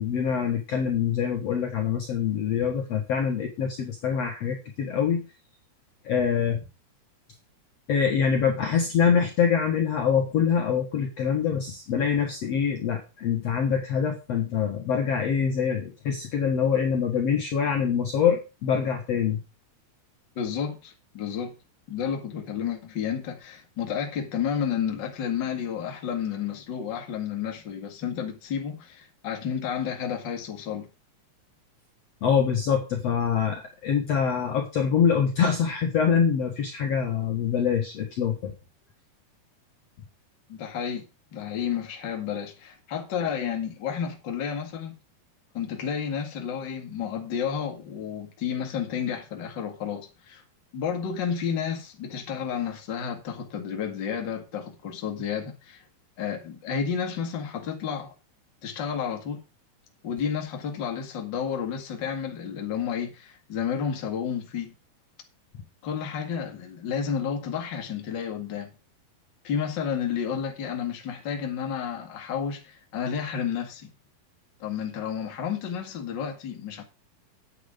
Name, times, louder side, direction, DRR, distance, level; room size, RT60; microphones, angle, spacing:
voice 1, 0.0-5.2 6.0-6.6 7.9-19.4 32.2-38.5, left 7 dB, 55° left, 2.2 m, -25 dB
voice 2, 20.4-21.5 21.9-30.9 40.5-41.1 41.3-45.0 45.5-50.4 50.7-55.8 56.2-58.1 58.6-59.4 60.0-64.7 65.8-68.7 69.4-73.9 74.6-76.8, left 7 dB, 40° left, 2.0 m, -31 dB
9.0 x 8.7 x 5.1 m
omnidirectional pair, 4.2 m